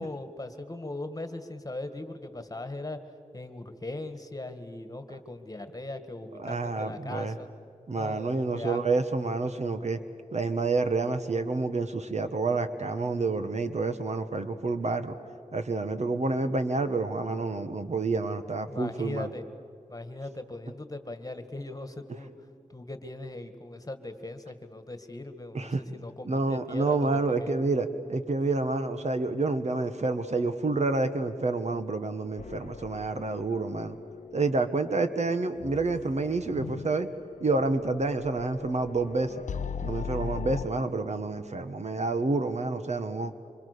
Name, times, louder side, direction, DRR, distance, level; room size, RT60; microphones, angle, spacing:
voice 1, 0.0-3.0 3.3-7.5 7.9-8.8 18.7-19.4 19.9-22.3 22.7-27.5, left 2 dB, 25° left, 9 dB, 1.9 m, -39 dB
voice 2, 6.4-7.3 7.9-10.0 10.3-15.2 15.5-19.3 25.5-25.8 26.2-34.0 34.3-37.1 37.4-39.3 39.8-43.3, right 3 dB, 55° right, 9 dB, 1.5 m, -28 dB
sound 1, 32.4-40.7, left 6 dB, 65° left, 0.6 m, -40 dB
26.5 x 25.5 x 6.9 m, 2.5 s
wide cardioid pair, 75°, 13 cm